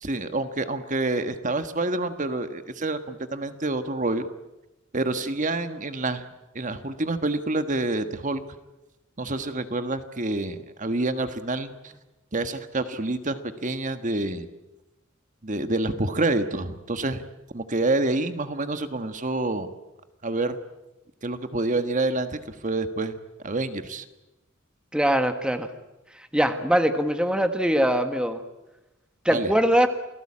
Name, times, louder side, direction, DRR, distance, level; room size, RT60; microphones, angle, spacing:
voice 1, 0.0-4.3 4.9-6.2 6.5-8.4 9.2-11.9 12.3-14.5 15.4-17.2 17.5-19.7 20.2-20.6 21.2-23.2 23.4-24.0 29.3-29.5, right 2 dB, 40° right, 9 dB, 1.4 m, -27 dB
voice 2, 24.9-25.7 26.3-28.4 29.2-29.9, equal, 5° right, 8 dB, 1.4 m, -22 dB
29.0 x 19.0 x 8.7 m, 1.0 s
head